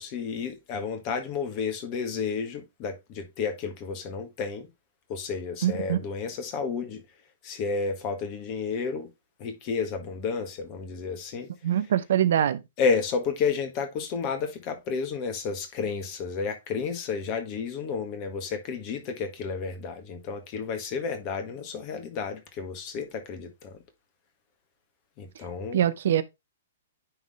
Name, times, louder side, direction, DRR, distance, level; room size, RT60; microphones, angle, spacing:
voice 1, 0.0-4.7 5.1-7.0 7.4-9.1 9.4-11.5 12.8-23.8 25.2-25.8, left 5 dB, 35° left, 1.6 m, -31 dB
voice 2, 5.6-6.0 11.6-12.6 25.7-26.2, right 10 dB, 60° right, 0.6 m, -23 dB
9.6 x 3.7 x 3.5 m
figure-of-eight pair, 110°, 0 cm